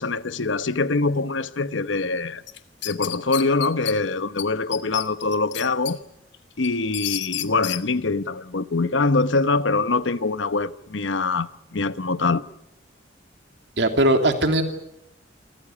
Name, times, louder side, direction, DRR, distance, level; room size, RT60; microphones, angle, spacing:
voice 1, 0.0-2.4 2.8-6.0 6.6-12.5, left 3 dB, 85° left, 1.0 m, -24 dB
sound 1, 2.5-3.9 4.4-4.5 4.7-5.9 6.3-7.8, left 14 dB, 70° left, 1.3 m, -30 dB
voice 2, 13.8-14.6, right 1 dB, 65° right, 2.9 m, -19 dB
29.0 x 14.0 x 10.0 m
head